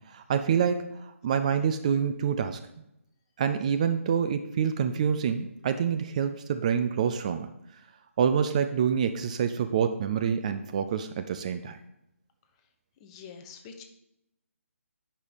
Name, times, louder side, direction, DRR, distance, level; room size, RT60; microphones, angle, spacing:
voice 1, 0.1-2.6 3.4-7.5 8.2-11.8, right 7 dB, 30° right, 8 dB, 0.4 m, -27 dB
voice 2, 13.0-13.8, left 6 dB, 20° left, 6 dB, 0.8 m, -45 dB
9.7 x 5.3 x 5.2 m, 0.84 s
figure-of-eight pair, 145°, 8 cm